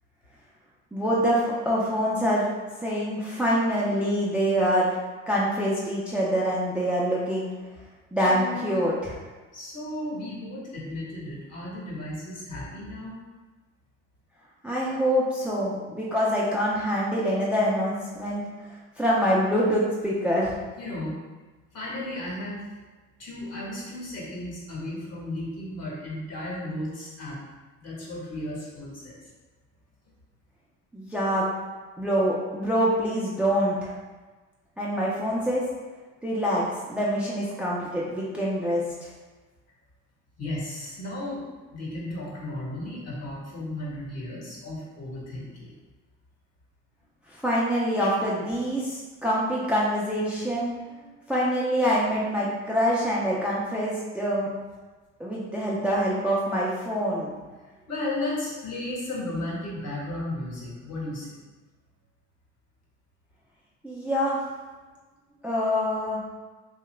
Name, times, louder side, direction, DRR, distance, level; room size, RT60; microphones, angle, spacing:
voice 1, 0.9-2.5 2.8-5.0 5.3-7.5 8.1-9.1 14.6-20.6 30.9-31.4 32.0-33.9 34.8-35.6 36.2-39.1 47.3-50.7 51.3-54.5 55.2-57.3 63.8-64.4 65.4-66.2, equal, 5° right, -6 dB, 0.5 m, -25 dB
voice 2, 8.2-8.7 9.5-13.2 20.8-21.2 21.7-22.6 23.2-27.4 27.8-29.3 40.4-41.4 41.7-45.7 57.9-61.4, left 1 dB, 50° left, -5 dB, 1.3 m, -34 dB
2.8 x 2.4 x 3.1 m, 1.3 s
supercardioid pair, 80°, 33 cm